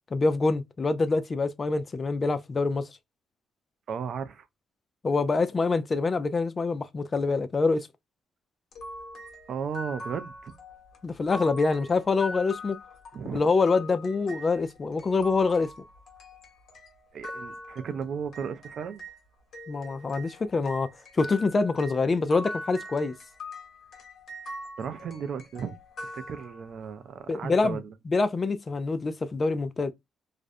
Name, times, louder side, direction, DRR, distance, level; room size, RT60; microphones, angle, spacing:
voice 1, 0.1-2.9 5.0-7.9 11.0-12.8 13.3-15.7 19.7-20.9 21.1-23.1 27.3-27.8 28.1-29.9, left 3 dB, 35° left, 0.3 m, -25 dB
voice 2, 3.9-4.5 9.5-10.5 13.1-13.4 17.1-19.0 24.8-27.9, right 7 dB, 60° right, 0.4 m, -35 dB
sound 1, 8.7-19.2 19.5-26.9, left 1 dB, 65° left, 0.9 m, -42 dB
2.4 x 2.0 x 2.5 m
cardioid pair, 90°, 0 cm